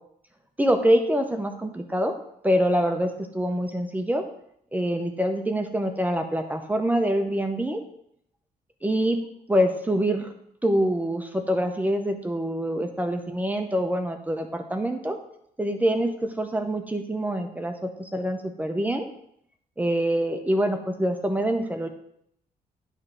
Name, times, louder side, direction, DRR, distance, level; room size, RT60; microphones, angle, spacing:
voice 1, 0.6-2.2 2.4-4.2 4.7-7.8 8.8-9.2 9.5-10.3 10.6-15.2 15.6-19.1 19.8-21.9, equal, 10° right, 5 dB, 0.6 m, -25 dB
9.0 x 3.2 x 6.0 m, 0.71 s
cardioid pair, 145°, 16 cm